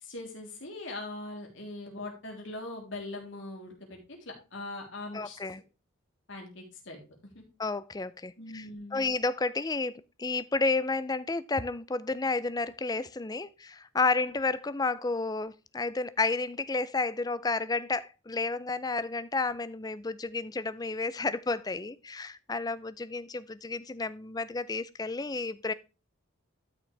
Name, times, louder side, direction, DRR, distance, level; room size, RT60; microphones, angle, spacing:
voice 1, 0.0-5.4 6.3-7.0 7.3-7.4 8.4-9.1, left 2 dB, 65° left, 3.2 m, -41 dB
voice 2, 5.1-5.6 7.6-8.7 8.9-25.7, left 3 dB, 20° left, 0.4 m, -31 dB
12.5 x 6.1 x 3.3 m
head